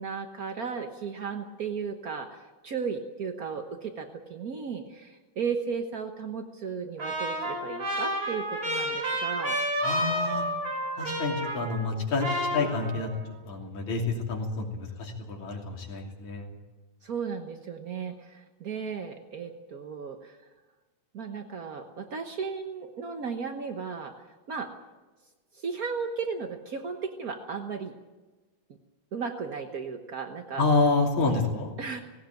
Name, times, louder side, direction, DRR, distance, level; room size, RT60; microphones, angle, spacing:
voice 1, 0.0-9.6 17.0-20.4 21.1-24.1 24.5-24.7 25.5-27.9 29.1-30.6 31.8-32.0, right 5 dB, 70° right, 5 dB, 0.8 m, -35 dB
Trumpet, 7.0-11.9 12.2-13.2, equal, 30° right, 5.0 m, -30 dB
voice 2, 9.8-10.5 11.0-13.1 13.5-16.5 30.6-31.7, left 3 dB, 75° left, 0 dB, 4.3 m, -28 dB
18.5 x 17.5 x 9.2 m, 1.2 s
omnidirectional pair, 3.4 m